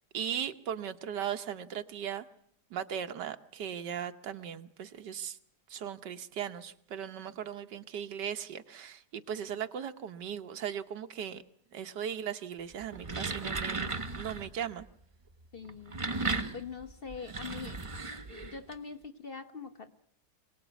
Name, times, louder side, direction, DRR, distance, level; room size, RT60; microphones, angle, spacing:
voice 1, 0.1-2.3 2.7-5.4 5.7-11.4 11.7-14.8, right 9 dB, 85° right, 9 dB, 1.7 m, -38 dB
sound 1, 12.8-14.5 15.6-18.7, right 3 dB, 25° right, 0.8 m, -36 dB
voice 2, 15.5-16.0 16.5-17.9 18.3-19.9, left 5 dB, 40° left, 8 dB, 1.2 m, -43 dB
24.5 x 18.5 x 8.3 m, 0.72 s
omnidirectional pair, 1.8 m